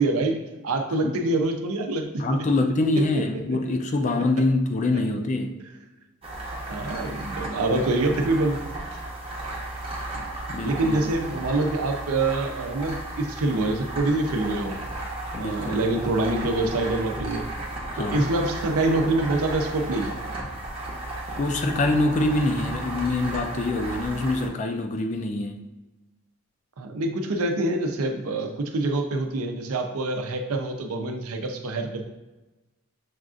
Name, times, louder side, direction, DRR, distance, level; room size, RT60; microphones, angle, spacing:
voice 1, 0.0-2.4 6.7-8.6 10.7-14.8 15.4-17.5 18.0-20.2 26.8-32.0, right 2 dB, 90° right, 4 dB, 0.5 m, -25 dB
voice 2, 2.2-5.6 10.5-11.0 15.3-15.9 17.9-18.3 21.4-25.6, left 2 dB, 35° left, 5 dB, 0.3 m, -25 dB
sound 1, 6.2-24.5, right 1 dB, 25° right, 0.6 m, -34 dB
6.3 x 2.4 x 2.4 m, 1.1 s
head